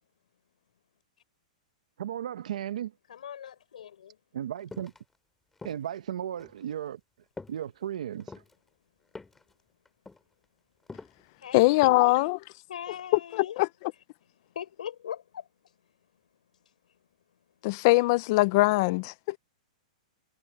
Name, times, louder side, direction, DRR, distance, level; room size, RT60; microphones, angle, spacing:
voice 1, 2.0-2.9 4.3-4.9 5.6-7.0 7.5-8.4, right 10 dB, 70° right, 0.8 m, -35 dB
voice 2, 3.1-4.2 11.4-12.3 12.7-13.6 14.4-15.5 16.6-16.7, left 9 dB, 85° left, 6.3 m, -41 dB
sound 1, 4.7-5.0 5.6-6.0 6.4-6.6 7.4-7.7 8.1-8.6 9.1-9.5 9.9-10.2 10.9-11.2 11.8-12.1 12.5-12.6, left 3 dB, 5° left, 2.2 m, -45 dB
voice 3, 11.5-12.4 13.3-13.7 17.6-19.4, left 21 dB, 30° left, 0.3 m, -22 dB
supercardioid pair, 175°, 4 cm